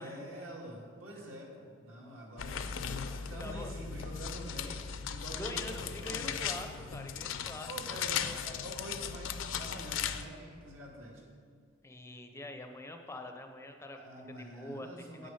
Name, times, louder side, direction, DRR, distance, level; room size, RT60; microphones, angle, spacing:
voice 1, 0.0-3.0 3.3-6.7 7.7-11.2 13.9-15.3, right 1 dB, 75° right, -2 dB, 1.8 m, -46 dB
sound 1, 2.4-10.2, left 7 dB, 70° left, 0.5 m, -37 dB
voice 2, 3.4-3.8 5.4-8.0 11.8-14.0 14.4-15.3, left 1 dB, 15° left, 5 dB, 0.5 m, -45 dB
8.4 x 6.3 x 5.5 m, 2.1 s
head